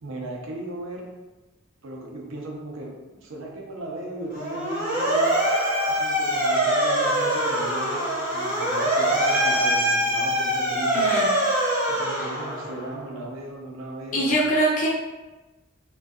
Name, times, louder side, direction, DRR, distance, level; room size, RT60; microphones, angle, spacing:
voice 1, 0.0-1.1 1.8-5.4 6.0-11.1 11.9-14.4, right 1 dB, 75° right, 0 dB, 0.5 m, -36 dB
Motor vehicle (road) / Siren, 4.3-12.9, right 1 dB, 40° right, 0.7 m, -23 dB
voice 2, 10.9-11.3 12.1-12.3 14.1-14.9, right 1 dB, 40° left, -4 dB, 0.6 m, -23 dB
2.6 x 2.2 x 2.3 m, 1.1 s
head